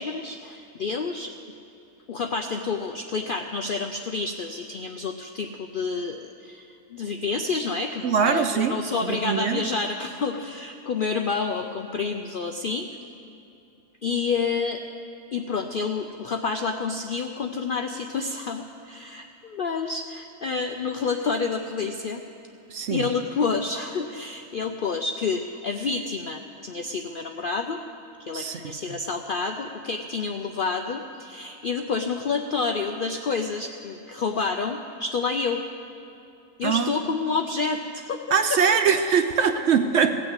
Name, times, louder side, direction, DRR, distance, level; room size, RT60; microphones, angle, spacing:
voice 1, 0.0-1.3 2.1-12.9 14.0-14.8 15.3-22.2 22.9-27.8 28.2-35.6 36.6-38.2, left 4 dB, 65° left, 5 dB, 0.5 m, -29 dB
voice 2, 8.0-8.7 9.0-9.6 22.7-23.0 28.3-29.0 36.6-36.9 38.3-40.2, right 6 dB, 60° right, 8 dB, 0.8 m, -22 dB
17.5 x 6.2 x 8.1 m, 2.8 s
omnidirectional pair, 1.5 m